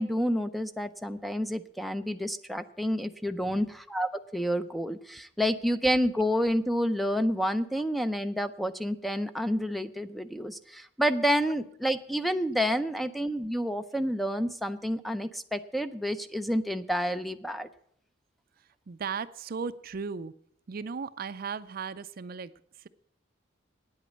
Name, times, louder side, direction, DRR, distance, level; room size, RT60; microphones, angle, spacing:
voice 1, 0.0-17.7, equal, ahead, 11 dB, 0.5 m, -29 dB
voice 2, 18.9-20.3 20.7-22.9, right 5 dB, 50° right, 14 dB, 0.5 m, -37 dB
9.6 x 8.3 x 8.3 m, 0.66 s
head